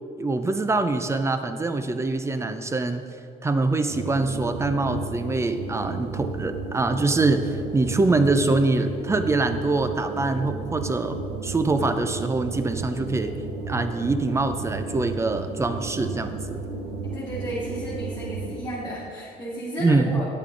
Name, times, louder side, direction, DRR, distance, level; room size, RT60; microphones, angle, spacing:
voice 1, 0.2-3.0 3.4-13.3 13.7-16.6 19.8-20.1, right 3 dB, 15° right, 9 dB, 0.6 m, -24 dB
sound 1, 3.9-18.6, right 4 dB, 80° right, 1.0 m, -33 dB
voice 2, 17.0-20.2, equal, 20° left, -9 dB, 2.2 m, -33 dB
9.7 x 8.1 x 3.9 m, 2.4 s
cardioid pair, 110°, 17 cm